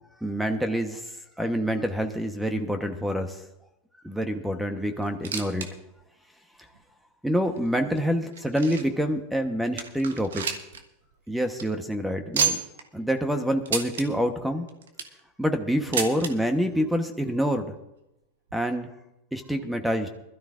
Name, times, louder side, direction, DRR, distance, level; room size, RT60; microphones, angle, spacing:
voice 1, 0.2-1.1 1.4-3.4 4.0-5.7 7.2-10.6 11.3-12.6 12.9-14.7 15.4-17.7 18.5-18.9 19.3-20.1, equal, 5° right, 6 dB, 1.1 m, -27 dB
sound 1, 5.0-5.7 6.0-6.1 6.7-6.8 7.6-9.0 9.5-9.6 9.8-10.8 11.1-11.2 11.5-11.6 12.3-12.8 13.7-14.1 14.7-15.2 15.9-16.3 17.3-17.4 17.6-17.7 18.5-18.6, right 7 dB, 90° right, 1.3 m, -29 dB
21.5 x 13.0 x 2.5 m, 0.88 s
hypercardioid pair, 115°, 0 cm